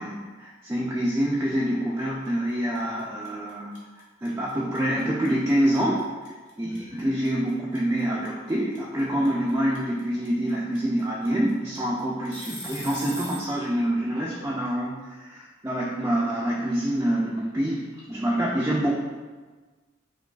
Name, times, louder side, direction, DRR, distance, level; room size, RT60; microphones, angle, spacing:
voice 1, 0.0-3.7 4.2-6.1 6.6-19.0, right 1 dB, 15° right, -5 dB, 0.3 m, -26 dB
sound 1, 2.2-2.5 2.7-13.5, equal, 75° left, 0.9 m, -41 dB
4.6 x 2.3 x 2.3 m, 1.3 s
head